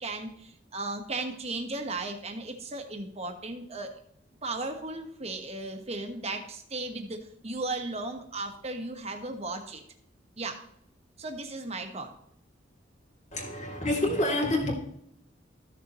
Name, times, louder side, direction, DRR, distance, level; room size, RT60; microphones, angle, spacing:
voice 1, 0.0-3.9 4.4-9.8 10.4-10.6 11.2-12.1, right 2 dB, 35° right, 1.3 m, -36 dB
voice 2, 13.3-14.7, left 1 dB, 40° left, 2.6 m, -27 dB
14.0 x 6.7 x 3.1 m
head